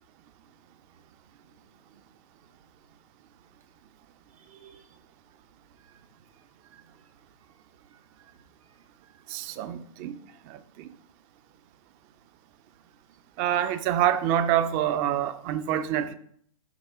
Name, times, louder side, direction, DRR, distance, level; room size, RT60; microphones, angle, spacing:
voice 1, 4.4-5.0 5.8-6.0 6.6-7.1 7.9-9.1, right 7 dB, 70° right, 1.8 m, -58 dB
voice 2, 9.3-10.2 10.5-10.9 13.4-16.1, right 10 dB, 30° right, 0.7 m, -26 dB
12.0 x 4.7 x 3.6 m
figure-of-eight pair, 115°, 18 cm